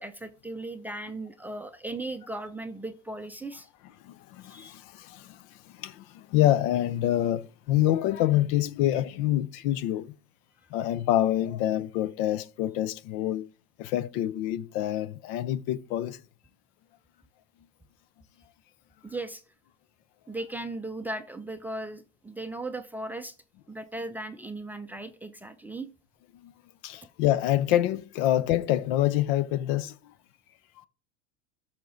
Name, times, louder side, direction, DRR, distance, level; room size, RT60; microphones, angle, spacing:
voice 1, 0.0-3.7 4.5-4.7 19.0-19.4 20.3-23.3 23.7-25.9, right 2 dB, 5° right, 0.5 m, -37 dB
voice 2, 4.0-5.4 5.8-10.1 10.7-13.5 13.8-16.2 26.4-26.5 26.8-29.9, left 13 dB, 60° left, 0.6 m, -26 dB
12.5 x 5.9 x 3.9 m
supercardioid pair, 130°, 33 cm